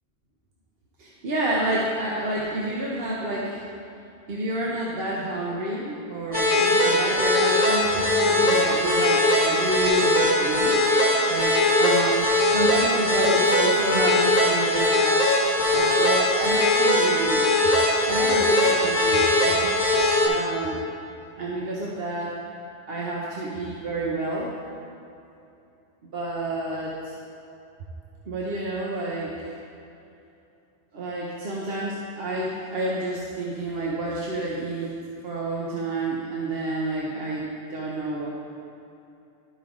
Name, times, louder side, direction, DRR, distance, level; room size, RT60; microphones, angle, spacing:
voice 1, 1.0-3.6 4.3-10.8 11.3-12.2 12.5-15.2 15.7-17.5 18.0-19.7 20.2-20.8 21.4-22.3 22.9-24.5 26.1-27.1 28.3-29.4 30.9-35.0 35.2-38.3, right 2 dB, 60° right, -5 dB, 1.1 m, -29 dB
sound 1, 6.3-20.3, left 1 dB, 10° right, 1.8 m, -21 dB
12.0 x 5.4 x 3.7 m, 2.7 s
omnidirectional pair, 1.1 m